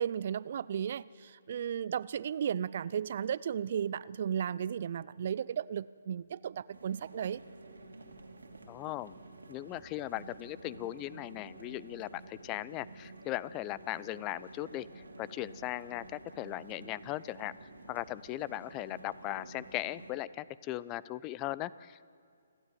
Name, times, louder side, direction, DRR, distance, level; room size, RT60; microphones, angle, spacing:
voice 1, 0.0-7.4, right 8 dB, 50° right, 20 dB, 0.5 m, -34 dB
sound 1, 6.7-20.1, right 2 dB, 80° right, 2.8 m, -51 dB
voice 2, 8.7-9.1 9.5-14.9 15.2-17.5 17.9-22.0, left 15 dB, 25° left, 19 dB, 0.6 m, -38 dB
29.0 x 12.0 x 9.3 m, 2.2 s
figure-of-eight pair, 135°, 0 cm